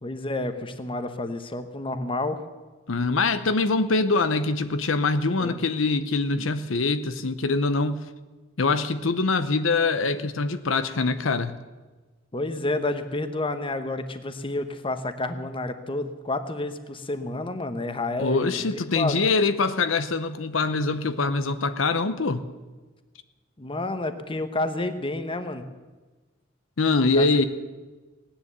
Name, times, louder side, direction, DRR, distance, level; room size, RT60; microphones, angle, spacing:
voice 1, 0.0-2.4 5.4-5.6 12.3-19.2 23.6-25.6 27.1-27.5, left 2 dB, 25° left, 10 dB, 1.0 m, -30 dB
voice 2, 2.9-8.0 8.6-11.5 18.2-22.4 26.8-27.5, left 3 dB, 80° left, 11 dB, 0.8 m, -24 dB
17.5 x 10.0 x 8.1 m, 1.3 s
head